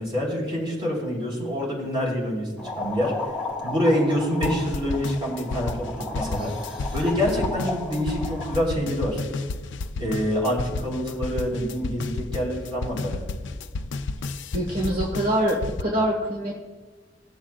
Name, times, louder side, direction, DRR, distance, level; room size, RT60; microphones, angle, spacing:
voice 1, 0.0-3.1 3.6-6.5 6.9-9.2 10.0-13.3, equal, 30° right, -4 dB, 3.3 m, -26 dB
sound 1, 2.6-8.6, left 2 dB, 5° right, 1.6 m, -34 dB
sound 2, 4.4-15.8, left 3 dB, 80° left, 0.4 m, -32 dB
voice 2, 14.5-16.6, right 1 dB, 50° right, -1 dB, 1.1 m, -24 dB
17.0 x 7.3 x 2.3 m, 1.4 s
head